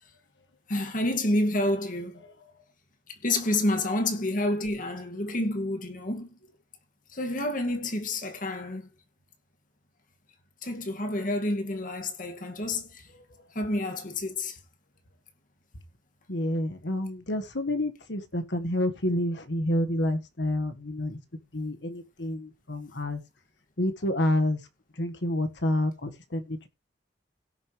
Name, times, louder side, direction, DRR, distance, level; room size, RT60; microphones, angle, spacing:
voice 1, 0.7-2.2 3.2-6.3 7.1-8.9 10.6-13.0 13.5-14.6, left 1 dB, 50° left, 2.2 m, -29 dB
voice 2, 16.3-21.2 21.5-23.2 23.8-24.6 25.0-26.7, left 1 dB, 85° left, 1.7 m, -28 dB
17.5 x 6.8 x 3.3 m
head